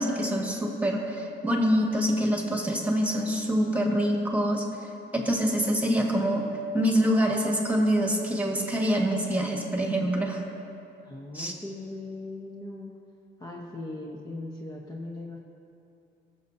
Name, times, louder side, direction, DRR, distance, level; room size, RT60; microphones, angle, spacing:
voice 1, 0.0-6.4 6.7-10.4 11.3-11.5, equal, 5° right, 0 dB, 1.7 m, -25 dB
voice 2, 11.0-12.9 13.4-15.4, left 2 dB, 20° left, -3 dB, 0.9 m, -39 dB
20.0 x 6.9 x 2.7 m, 2.7 s
cardioid pair, 90°, 20 cm